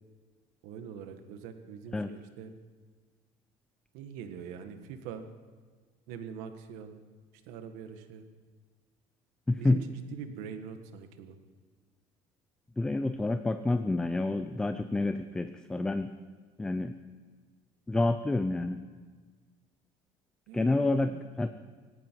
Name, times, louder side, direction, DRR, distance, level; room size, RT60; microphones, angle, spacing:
voice 1, 0.6-2.6 3.9-5.3 6.1-7.0 7.5-8.3 9.6-11.4 20.5-21.3, right 7 dB, 80° right, 8 dB, 1.6 m, -43 dB
voice 2, 9.5-9.8 12.8-16.1 16.6-16.9 17.9-18.8 20.5-21.6, left 2 dB, 5° left, 10 dB, 0.4 m, -28 dB
18.5 x 17.0 x 4.6 m, 1.5 s
cardioid pair, 170°, 13 cm